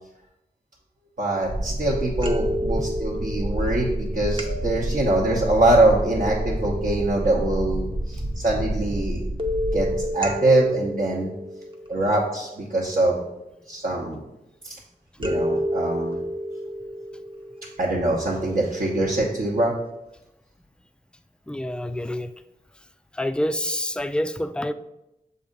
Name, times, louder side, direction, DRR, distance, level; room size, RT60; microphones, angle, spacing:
voice 1, 1.2-9.2 9.7-11.3 11.9-13.2 13.7-14.2 14.6-14.7 15.2-16.2 17.8-19.7, right 2 dB, 60° right, -5 dB, 1.0 m, -23 dB
sound 1, 1.3-1.8 2.2-7.8 9.4-12.6 15.2-18.5 19.2-19.3 19.7-19.8, equal, 30° right, 0.8 m, -31 dB
sound 2, 1.4-10.1, right 1 dB, 85° right, 1.4 m, -29 dB
voice 2, 21.5-22.3 23.1-24.7, left 1 dB, 5° left, 11 dB, 0.3 m, -27 dB
6.7 x 2.7 x 5.2 m, 0.89 s
wide cardioid pair, 60°, 17 cm